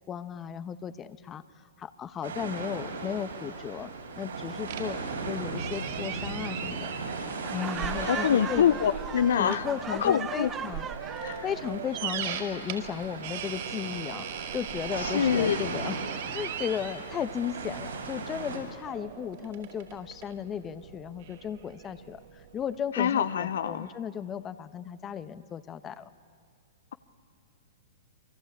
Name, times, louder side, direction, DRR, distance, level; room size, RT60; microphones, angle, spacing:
voice 1, 0.1-1.4 1.8-5.0 5.3-7.0 7.5-8.7 9.3-10.9 11.4-16.0 16.3-26.1, left 8 dB, 25° left, 12 dB, 1.2 m, -35 dB
sound 1, 2.2-18.6, right 4 dB, 75° right, 7.5 m, -37 dB
sound 2, 4.7-22.8, right 9 dB, 50° right, 5.1 m, -41 dB
Laughter, 7.4-11.5, right 7 dB, 20° right, 1.1 m, -38 dB
voice 2, 8.0-9.6 10.0-10.5 11.2-11.4 15.0-15.6 22.9-23.9, left 9 dB, 65° left, 12 dB, 0.8 m, -25 dB
29.0 x 24.0 x 8.6 m, 2.1 s
figure-of-eight pair, 105°, 0 cm